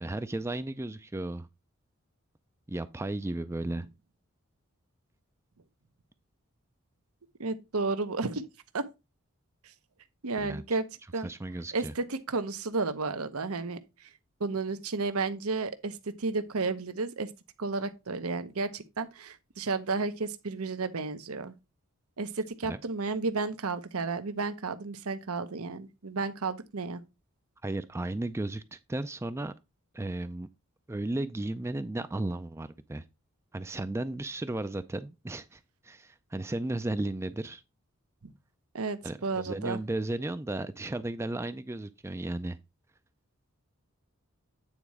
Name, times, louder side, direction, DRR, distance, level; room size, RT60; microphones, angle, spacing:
voice 1, 0.0-1.5 2.7-3.9 10.4-10.6 11.2-11.9 22.6-22.8 27.6-29.5 29.9-30.5 30.9-33.0 33.5-37.6 39.0-42.6, right 2 dB, 10° right, 0.4 m, -34 dB
voice 2, 7.4-8.5 8.7-8.8 10.2-10.8 11.1-11.3 11.7-13.8 14.4-17.3 17.6-21.5 22.2-27.0 38.7-39.8, right 3 dB, 90° right, 0.9 m, -32 dB
9.0 x 4.1 x 4.8 m
head